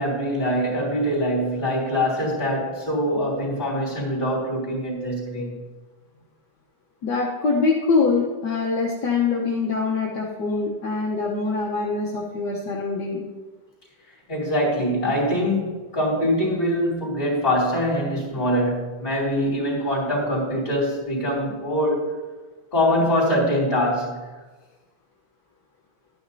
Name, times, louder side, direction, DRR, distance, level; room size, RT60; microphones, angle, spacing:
voice 1, 0.0-5.6 14.3-22.1 22.7-24.2, equal, 25° left, -4 dB, 2.9 m, -23 dB
voice 2, 7.0-13.2, left 4 dB, 65° left, -3 dB, 1.6 m, -24 dB
12.5 x 9.2 x 2.7 m, 1.3 s
omnidirectional pair, 2.1 m